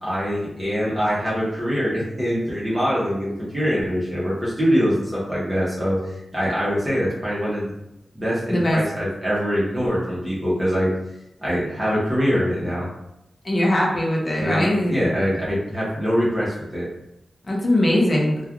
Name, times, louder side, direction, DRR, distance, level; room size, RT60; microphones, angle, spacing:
voice 1, 0.0-7.7 8.1-10.9 11.4-12.9 14.4-16.9, equal, 20° right, -7 dB, 0.9 m, -23 dB
voice 2, 13.4-15.1 17.4-18.4, left 1 dB, 40° left, -2 dB, 0.7 m, -20 dB
3.2 x 2.3 x 2.3 m, 0.87 s
wide cardioid pair, 115°, 0 cm